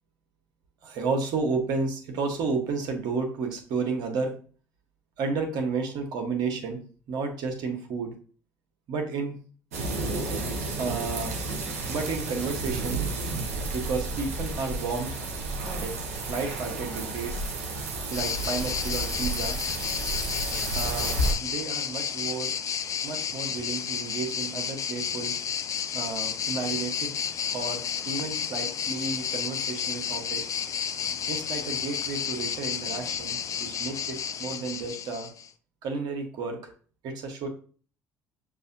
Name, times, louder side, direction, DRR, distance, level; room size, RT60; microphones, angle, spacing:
voice 1, 0.8-4.4 5.2-6.8 7.1-8.2 8.9-9.4 10.7-11.4 11.9-13.0 13.7-15.1 15.6-17.3 18.1-19.6 20.7-22.5 23.0-25.3 25.9-27.1 27.5-30.5 31.2-35.3 35.8-36.7 37.0-37.5, right 4 dB, 60° right, 3 dB, 1.2 m, -32 dB
sound 1, 9.7-21.3, right 2 dB, 85° right, 0.8 m, -31 dB
sound 2, 18.1-35.5, left 8 dB, 45° left, 0.4 m, -32 dB
6.7 x 2.6 x 2.7 m, 0.41 s
hypercardioid pair, 60°, 8 cm